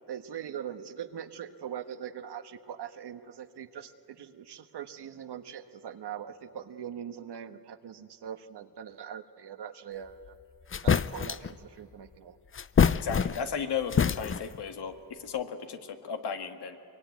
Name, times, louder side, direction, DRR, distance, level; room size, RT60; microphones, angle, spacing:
voice 1, 0.1-10.4 10.8-12.4, right 9 dB, 90° right, 9 dB, 1.3 m, -42 dB
sound 1, 10.3-10.4 10.7-11.5 12.5-13.6 13.9-14.6, left 6 dB, 35° left, 0.6 m, -26 dB
voice 2, 12.9-16.8, left 6 dB, 90° left, 6 dB, 1.8 m, -35 dB
23.5 x 23.5 x 9.4 m, 2.6 s
cardioid pair, 80°, 39 cm